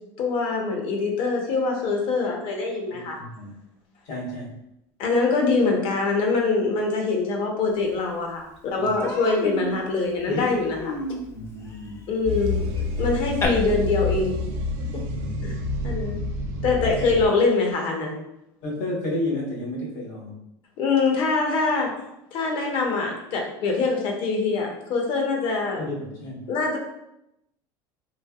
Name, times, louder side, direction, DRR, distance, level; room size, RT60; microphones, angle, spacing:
voice 1, 0.2-3.2 5.0-10.9 12.1-12.6 13.0-14.4 15.4-15.6 15.8-16.2 16.6-18.1 20.8-25.8 26.5-26.8, left 3 dB, 55° left, 1 dB, 0.8 m, -24 dB
voice 2, 2.9-3.6 4.0-4.6 8.8-8.9 11.3-12.0 15.2-15.6 18.6-20.4 25.8-26.5, left 1 dB, 80° left, -3 dB, 1.2 m, -32 dB
Human voice, 8.0-8.1 8.4-8.6 9.0-13.5, left 2 dB, 25° left, 0.5 m, -33 dB
sound 1, 12.2-17.3, left 2 dB, 70° right, 0.4 m, -28 dB
3.2 x 2.7 x 2.3 m, 0.83 s
cardioid pair, 135°, 11 cm